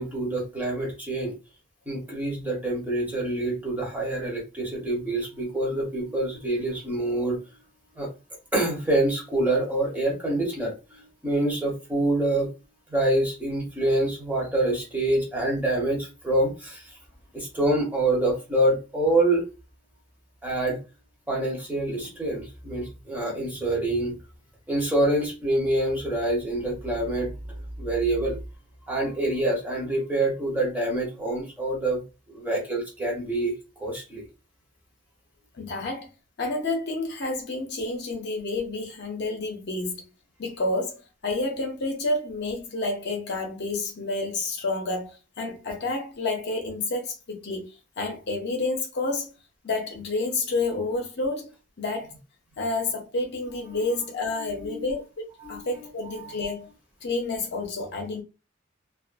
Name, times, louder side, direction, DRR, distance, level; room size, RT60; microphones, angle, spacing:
voice 1, 0.0-1.3 1.9-7.4 7.9-8.1 8.5-12.5 12.9-17.0 17.3-19.4 20.4-20.8 21.3-24.1 24.7-27.3 27.8-28.4 28.9-32.0 32.3-34.2 53.7-53.8 54.4-54.9 55.4-55.6 56.0-56.5, right 1 dB, 10° right, 0.9 m, -26 dB
voice 2, 35.5-36.1 36.4-40.0 40.4-47.7 48.0-49.3 49.6-51.5 51.8-52.1 52.6-56.7 57.0-58.2, left 2 dB, 60° left, 0.7 m, -29 dB
2.5 x 2.4 x 2.4 m
head